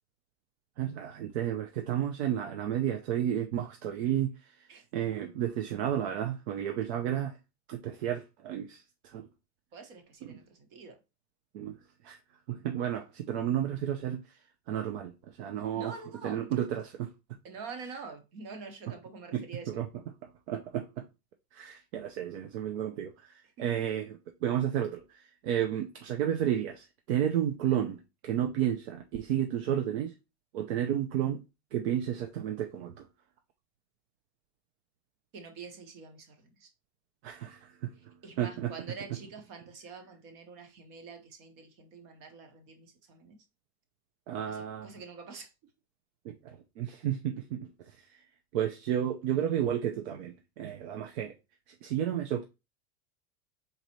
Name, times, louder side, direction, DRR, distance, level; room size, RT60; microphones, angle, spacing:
voice 1, 0.8-7.4 7.7-9.2 10.3-10.4 11.5-11.8 12.0-12.2 12.5-14.3 14.7-15.9 16.2-17.1 19.3-19.4 19.7-19.9 20.2-21.1 21.5-30.1 30.5-31.4 31.7-33.1 37.2-38.7 44.3-44.9 46.2-48.2 48.5-51.3 51.7-52.4, right 10 dB, 75° right, 0.7 m, -32 dB
voice 2, 9.7-11.0 15.7-16.5 17.4-19.8 23.6-23.7 35.3-36.7 38.0-43.4 44.5-45.5, right 4 dB, 60° right, 1.4 m, -46 dB
4.1 x 4.0 x 3.1 m
supercardioid pair, 150°, 33 cm